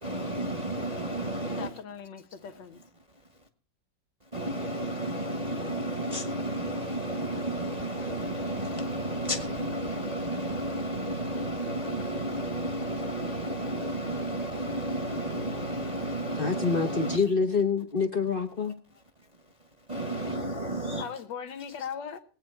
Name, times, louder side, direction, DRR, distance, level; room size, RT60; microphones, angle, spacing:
voice 1, 0.0-1.7 4.3-17.2 19.9-21.0, right 1 dB, 25° right, 1.0 m, -32 dB
voice 2, 1.5-2.8 21.0-22.2, left 7 dB, 80° left, 1.8 m, -39 dB
voice 3, 16.4-18.8, left 5 dB, 45° left, 0.7 m, -26 dB
20.0 x 8.5 x 4.4 m
omnidirectional pair, 2.0 m